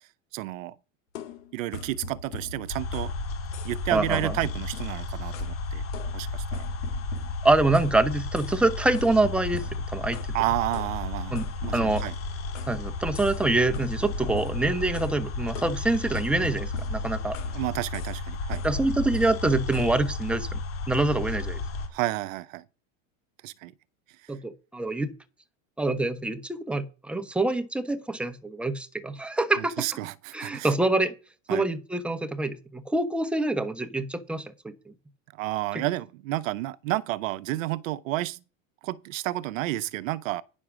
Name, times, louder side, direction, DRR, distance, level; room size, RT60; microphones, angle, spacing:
voice 1, 0.3-0.8 1.5-3.1 3.6-5.8 6.1-6.6 10.3-11.3 11.6-12.1 17.4-18.6 21.9-22.6 23.4-23.7 24.2-24.3 29.6-30.7 31.5-31.7 35.3-38.4 38.8-40.4, right 17 dB, 80° right, 0.7 m, -31 dB
sound 1, 1.2-3.2 3.5-3.9 4.1-5.6 5.9-8.0 8.4-8.6 8.9-10.4 10.7-12.8 13.1-13.5 13.7-15.2 15.6-17.6 17.9-18.2 18.5-20.0, left 2 dB, 75° left, 2.8 m, -40 dB
sound 2, 2.7-21.9, left 3 dB, 35° left, 2.2 m, -33 dB
voice 2, 3.9-4.3 7.4-10.2 11.3-11.5 11.7-12.0 12.7-17.4 18.6-20.6 20.9-21.6 24.3-25.1 25.8-29.9 30.3-31.1 31.5-34.7, right 2 dB, 5° right, 1.0 m, -25 dB
9.6 x 6.2 x 6.1 m
supercardioid pair, 115°, 39 cm